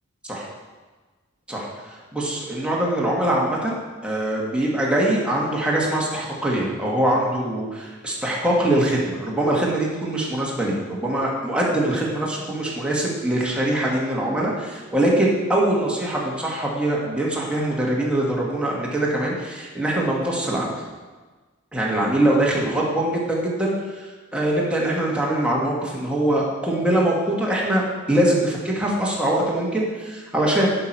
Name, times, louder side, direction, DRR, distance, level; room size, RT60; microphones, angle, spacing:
voice 1, 1.5-3.7 4.0-20.7 21.7-30.7, right 1 dB, 5° right, -4 dB, 1.5 m, -23 dB
11.0 x 5.7 x 4.5 m, 1.3 s
head